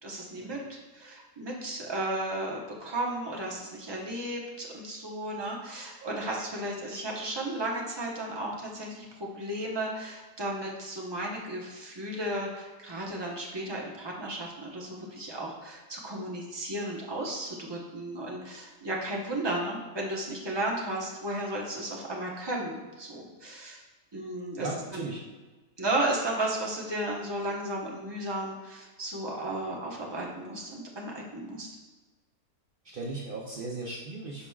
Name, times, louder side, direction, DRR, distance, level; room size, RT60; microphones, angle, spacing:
voice 1, 0.0-23.8 24.1-25.1 25.8-31.7, right 1 dB, 20° right, -2 dB, 0.7 m, -34 dB
voice 2, 24.6-25.2 32.8-34.5, right 2 dB, 70° right, -3 dB, 0.5 m, -37 dB
11.0 x 4.8 x 2.4 m, 1.3 s
omnidirectional pair, 1.9 m